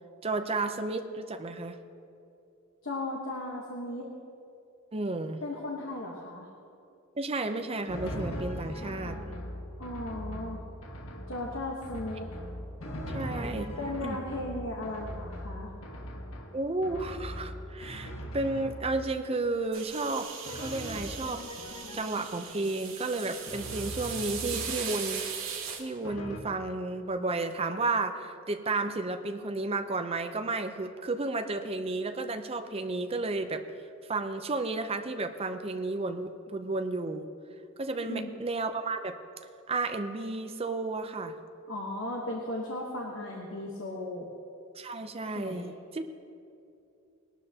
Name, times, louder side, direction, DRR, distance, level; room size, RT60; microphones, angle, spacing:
voice 1, 0.2-1.8 4.9-5.4 7.2-9.2 13.1-14.2 16.5-20.3 20.5-21.4 21.9-33.6 34.1-37.3 37.8-39.1 39.7-41.4 44.8-46.1, right 3 dB, 30° right, 7 dB, 0.6 m, -32 dB
voice 2, 2.8-4.1 5.4-6.5 9.8-10.6 11.3-12.3 12.9-13.0 13.8-15.7 38.1-38.3 41.7-44.3 45.3-45.6, left 1 dB, 60° left, -1 dB, 1.2 m, -36 dB
Drum, 7.9-19.2 20.4-22.4 23.5-25.0 26.0-26.4, equal, 85° left, 1.4 m, -40 dB
sound 1, 19.7-25.8, right 7 dB, 75° right, 1.9 m, -39 dB
19.5 x 12.0 x 2.9 m, 2.6 s
head